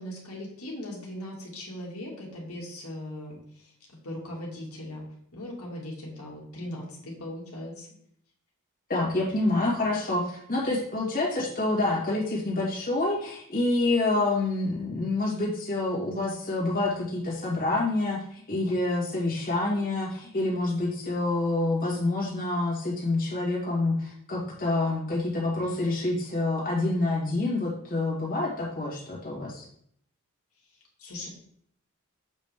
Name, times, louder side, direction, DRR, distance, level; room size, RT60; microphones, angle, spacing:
voice 1, 0.0-5.0 5.3-7.9 31.0-31.3, left 1 dB, 85° left, -3 dB, 2.1 m, -39 dB
voice 2, 8.9-29.7, left 2 dB, 45° left, -5 dB, 2.0 m, -27 dB
7.4 x 5.2 x 3.5 m, 0.65 s
head